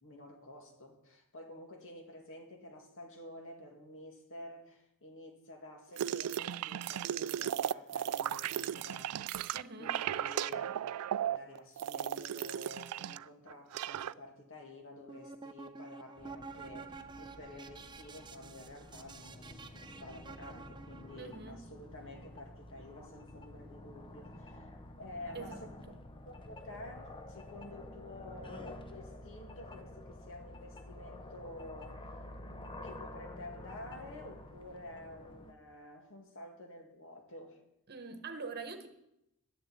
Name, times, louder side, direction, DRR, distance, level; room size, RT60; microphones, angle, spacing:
voice 1, 0.0-10.9 11.2-24.7 25.0-25.8 26.3-32.0 32.8-37.6, left 1 dB, 60° left, 2.1 m, -50 dB
sound 1, 6.0-13.2 13.5-14.1, right 10 dB, 75° right, 0.3 m, -36 dB
voice 2, 9.5-10.0 21.2-21.7 25.3-25.7 37.9-38.9, right 4 dB, 45° right, 1.1 m, -44 dB
sound 2, 14.9-21.3, right 4 dB, 20° right, 0.6 m, -50 dB
sound 3, 16.2-35.5, left 1 dB, 25° left, 0.8 m, -50 dB
11.0 x 6.9 x 8.4 m
head